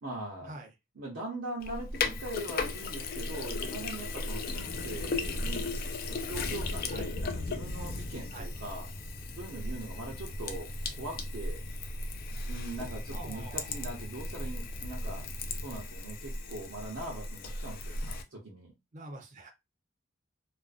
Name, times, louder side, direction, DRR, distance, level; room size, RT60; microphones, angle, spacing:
voice 1, 0.0-0.5 1.0-5.8 6.1-8.9 9.4-11.7 12.5-15.3 15.6-18.7, right 2 dB, 80° right, 0.7 m, -41 dB
Sink (filling or washing), 1.6-18.2, left 3 dB, 50° left, 0.3 m, -37 dB
sound 1, 1.9-15.8, left 1 dB, 15° left, 0.6 m, -49 dB
Thunder / Rain, 3.9-16.0, left 1 dB, 80° left, 0.8 m, -44 dB
voice 2, 13.1-13.8 18.9-19.5, right 2 dB, 40° right, 0.6 m, -45 dB
2.5 x 2.1 x 2.4 m
head